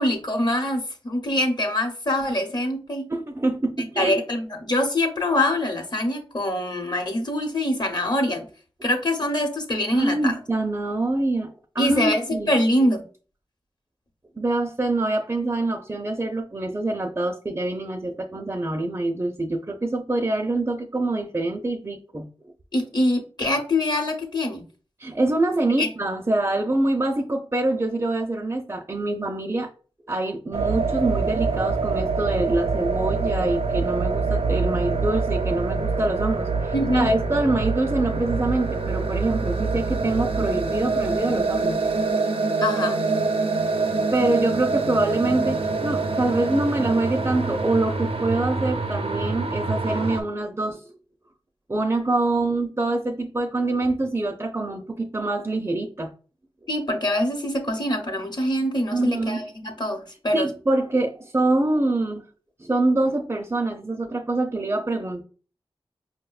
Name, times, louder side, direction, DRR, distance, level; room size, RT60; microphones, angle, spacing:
voice 1, 0.0-3.1 4.0-8.5 8.8-10.3 11.8-13.0 22.7-24.6 25.8-25.9 36.7-37.1 42.6-43.0 56.7-60.5, left 1 dB, 45° left, 4 dB, 0.9 m, -24 dB
voice 2, 3.1-4.2 9.9-12.5 14.4-22.3 25.0-29.7 30.1-41.8 44.1-50.8 51.7-56.1 58.9-59.4 60.3-62.2 62.6-65.2, right 2 dB, 25° right, 2 dB, 0.4 m, -25 dB
sound 1, 30.5-50.2, right 4 dB, 75° right, 0.5 m, -25 dB
5.0 x 2.1 x 2.3 m, 0.39 s
cardioid pair, 50°, 10 cm